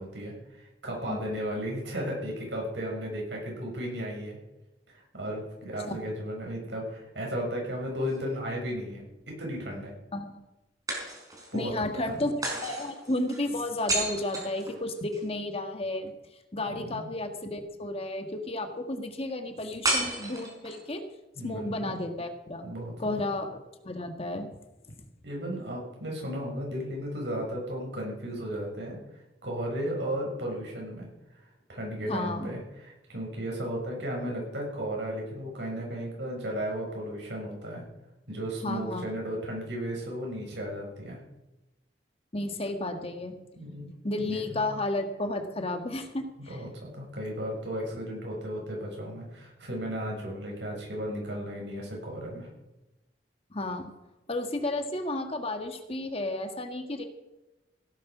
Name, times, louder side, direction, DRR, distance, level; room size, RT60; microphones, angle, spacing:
voice 1, 0.0-4.4 4.9-9.9 11.5-11.7 12.1-12.3 16.7-17.1 21.3-22.0 22.6-23.3 25.2-31.1 31.3-31.4 31.7-37.8 38.3-41.2 43.6-43.9 44.2-44.7 46.4-52.5, equal, 90° right, -1 dB, 6.7 m, -35 dB
sound 1, 7.8-8.8 10.9-11.6 12.4-15.3 19.8-20.9, right 2 dB, 20° right, 4.5 m, -33 dB
voice 2, 10.1-10.4 11.5-12.3 12.6-16.1 16.5-21.0 21.4-22.7 23.0-24.5 32.0-32.5 38.6-39.0 42.3-43.4 44.0-46.6 53.5-53.9 54.3-57.0, left 2 dB, 35° left, 6 dB, 1.7 m, -32 dB
16.5 x 10.0 x 6.1 m, 0.98 s
head